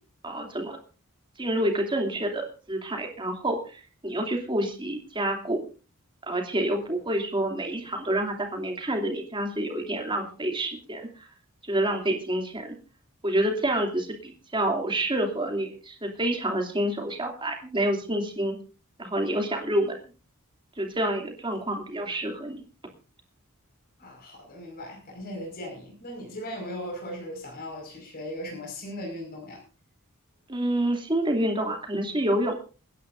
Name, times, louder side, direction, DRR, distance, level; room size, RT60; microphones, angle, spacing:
voice 1, 0.2-0.8 1.4-5.6 6.3-11.2 11.6-12.8 13.2-18.6 19.0-20.0 20.8-22.6 30.5-32.6, right 1 dB, 25° right, 3 dB, 2.7 m, -28 dB
voice 2, 24.0-29.6, equal, 45° left, 0 dB, 5.2 m, -38 dB
29.0 x 10.5 x 2.6 m, 0.35 s
head